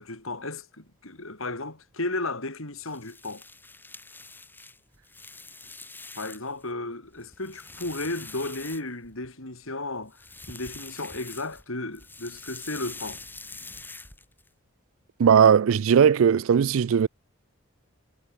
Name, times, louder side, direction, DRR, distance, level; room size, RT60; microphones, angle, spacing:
voice 1, 0.0-3.4 6.1-13.2, left 2 dB, 75° left, 4.8 m, -34 dB
sound 1, 2.8-6.6 7.0-9.3 10.0-11.7 11.9-14.5, left 3 dB, 10° left, 7.2 m, -44 dB
voice 2, 15.2-17.1, right 7 dB, 75° right, 0.4 m, -18 dB
head